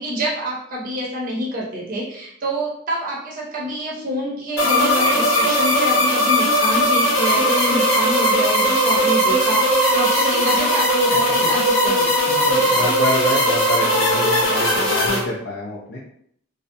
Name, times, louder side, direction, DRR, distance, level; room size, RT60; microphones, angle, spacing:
voice 1, 0.0-12.8, equal, 40° right, -3 dB, 0.6 m, -27 dB
sound 1, 4.6-15.2, equal, 90° left, 0.8 m, -18 dB
voice 2, 12.7-16.0, left 1 dB, 60° left, -4 dB, 0.5 m, -27 dB
2.5 x 2.1 x 2.6 m, 0.66 s
head